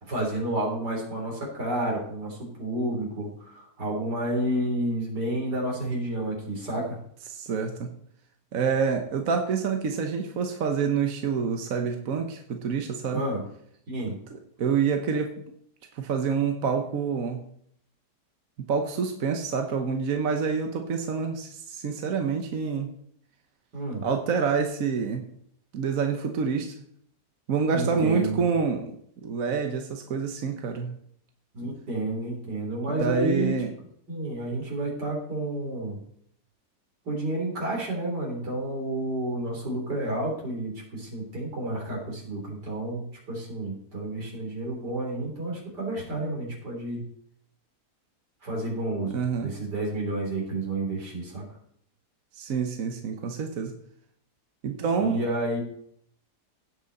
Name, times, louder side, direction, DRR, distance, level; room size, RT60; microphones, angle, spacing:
voice 1, 0.0-7.0 13.1-13.4 13.9-14.2 23.7-24.0 27.7-28.4 31.5-33.5 34.1-36.0 37.1-47.0 48.4-51.4 55.0-55.6, right 1 dB, 80° right, -2 dB, 4.2 m, -30 dB
voice 2, 7.3-7.9 8.5-13.2 14.3-15.3 15.9-17.4 18.7-22.9 24.0-25.3 25.7-26.7 27.5-28.9 29.2-30.9 32.9-33.7 49.0-49.5 52.4-53.7 54.6-55.2, right 6 dB, 60° right, 4 dB, 1.3 m, -27 dB
16.5 x 6.1 x 4.1 m, 0.66 s
omnidirectional pair, 1.7 m